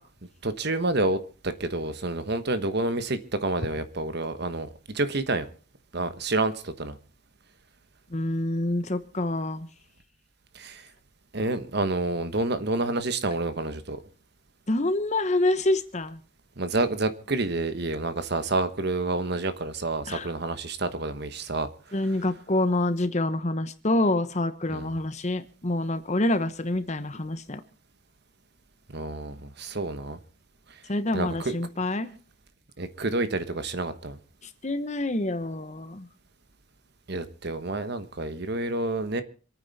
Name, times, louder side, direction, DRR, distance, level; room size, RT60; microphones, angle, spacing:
voice 1, 0.4-5.5 5.9-7.0 10.5-10.8 11.3-14.0 16.6-21.7 24.7-24.9 28.9-30.2 31.1-31.6 32.8-34.2 37.1-39.2, right 2 dB, 55° right, 1.3 m, -29 dB
voice 2, 8.1-9.7 14.7-16.2 20.1-20.3 21.9-27.6 30.9-32.1 34.6-36.1, left 1 dB, 35° left, 1.1 m, -27 dB
26.5 x 9.4 x 4.2 m
head